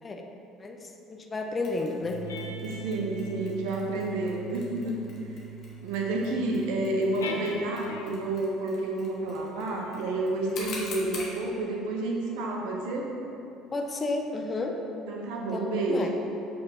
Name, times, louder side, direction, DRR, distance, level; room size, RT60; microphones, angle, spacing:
voice 1, 0.6-2.3 13.7-14.8 15.5-15.6 15.9-16.1, left 2 dB, 25° left, 3 dB, 0.5 m, -32 dB
Mechanisms, 1.6-11.4, left 3 dB, 50° left, 1.1 m, -46 dB
sound 1, 2.0-8.4 9.2-14.1, right 1 dB, 75° left, 0.4 m, -43 dB
voice 2, 2.6-5.0 5.8-13.1 15.1-16.1, right 2 dB, 60° right, 0 dB, 0.7 m, -30 dB
7.5 x 4.3 x 3.0 m, 2.9 s
figure-of-eight pair, 60°, 0 cm